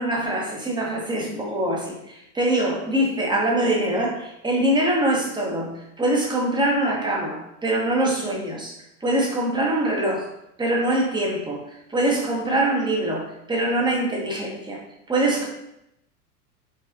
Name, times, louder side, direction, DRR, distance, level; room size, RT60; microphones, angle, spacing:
voice 1, 0.0-8.7 9.0-10.3 10.6-11.6 11.9-14.8 15.1-15.5, right 1 dB, 10° right, -2 dB, 1.2 m, -23 dB
4.5 x 4.2 x 2.7 m, 0.81 s
figure-of-eight pair, 90°, 48 cm